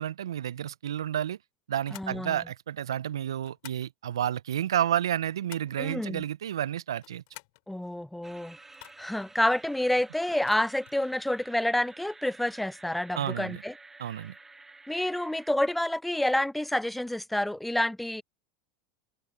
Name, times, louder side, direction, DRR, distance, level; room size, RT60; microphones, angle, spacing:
voice 1, 0.0-1.4 1.7-7.2 13.1-13.6 14.0-14.3, right 10 dB, 75° right, 0.6 m, -30 dB
sound 1, 1.8-2.2 3.4-3.9 5.0-5.8 6.9-7.6 8.7-9.3 10.3-11.0, left 25 dB, 60° left, 7.5 m, -51 dB
voice 2, 1.9-2.4 5.8-6.2 7.7-8.6 9.0-13.7 14.9-18.2, left 1 dB, 5° left, 0.4 m, -28 dB
sound 2, 8.2-15.5, right 3 dB, 10° right, 2.3 m, -51 dB
hypercardioid pair, 85°, 2 cm